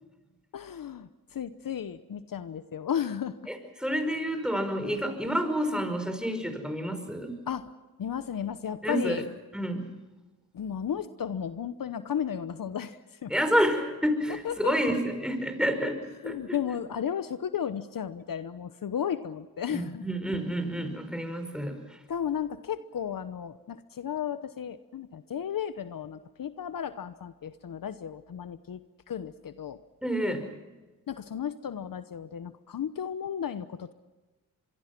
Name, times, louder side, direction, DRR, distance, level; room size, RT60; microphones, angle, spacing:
voice 1, 0.5-3.4 4.8-4.9 7.5-7.7 8.0-9.2 10.5-13.3 14.4-14.7 16.2-20.0 22.1-28.8 29.1-29.8 31.1-33.9, left 8 dB, 65° left, 12 dB, 1.0 m, -34 dB
voice 2, 3.5-7.4 8.8-9.2 9.5-9.9 13.3-16.6 19.7-22.0 30.0-30.5, equal, ahead, 7 dB, 5.3 m, -29 dB
25.5 x 22.5 x 6.0 m, 1.2 s
cardioid pair, 55°, 36 cm